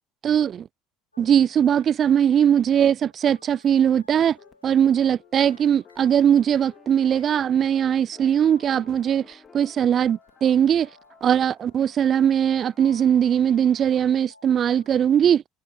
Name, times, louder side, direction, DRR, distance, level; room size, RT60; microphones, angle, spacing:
voice 1, 0.2-0.7 1.2-4.4 4.6-10.9 11.2-15.4, right 9 dB, 40° right, 0.3 m, -20 dB
sound 1, 1.1-15.1, left 2 dB, 90° left, 2.2 m, -56 dB
sound 2, 4.4-14.2, left 8 dB, 35° left, 2.3 m, -55 dB
sound 3, 6.3-14.1, left 3 dB, 15° left, 4.5 m, -56 dB
figure-of-eight pair, 60°, 0 cm